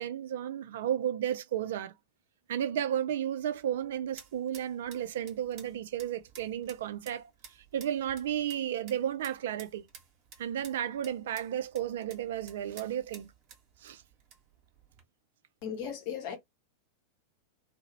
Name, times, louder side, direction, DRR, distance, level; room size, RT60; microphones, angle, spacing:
voice 1, 0.0-1.9 2.5-7.3 7.7-9.8 10.4-13.3 13.8-14.0, right 10 dB, 60° right, 0.3 m, -33 dB
sound 1, 3.4-15.0, right 6 dB, 35° right, 0.9 m, -55 dB
voice 2, 15.6-16.4, left 8 dB, 45° left, 0.8 m, -36 dB
2.3 x 2.0 x 2.9 m
figure-of-eight pair, 90°, 0 cm